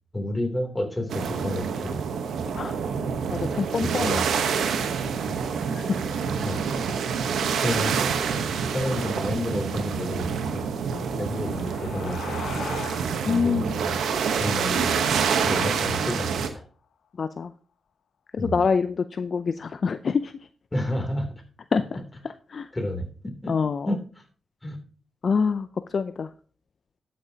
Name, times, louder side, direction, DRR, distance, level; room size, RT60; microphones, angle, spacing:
voice 1, 0.1-2.0 3.8-4.3 5.3-5.5 6.4-6.6 7.6-7.9 8.7-10.7 11.2-12.4 13.2-14.0 14.4-16.3 18.4-18.7 20.7-21.3 22.7-23.5 23.9-24.0 24.6-24.8, left 1 dB, 20° left, 3 dB, 3.0 m, -30 dB
sound 1, 1.1-16.5, right 6 dB, 85° right, 1.0 m, -27 dB
voice 2, 3.3-4.2 5.7-6.0 10.9-11.2 13.2-13.7 17.2-17.5 18.3-20.3 21.7-21.8 22.5-22.7 23.5-23.9 25.2-26.3, left 5 dB, 55° left, 11 dB, 0.4 m, -26 dB
sound 2, 11.0-16.2, left 7 dB, 80° left, 0.9 m, -41 dB
12.0 x 8.5 x 2.8 m, 0.41 s
cardioid pair, 70°, 0 cm